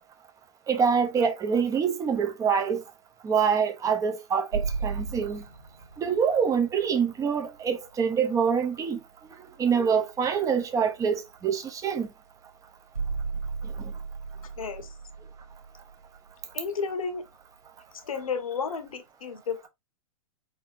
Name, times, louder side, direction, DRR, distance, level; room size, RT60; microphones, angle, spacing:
voice 1, 0.7-2.8 3.2-5.4 6.0-9.0 9.6-12.1, right 6 dB, 20° right, 0.9 m, -25 dB
sound 1, 4.5-8.3 11.9-12.0 12.9-16.8, right 5 dB, 90° right, 2.2 m, -35 dB
voice 2, 14.6-14.9 16.5-17.2 18.0-19.7, left 5 dB, 75° left, 1.2 m, -32 dB
4.6 x 3.9 x 2.6 m
hypercardioid pair, 115°, 18 cm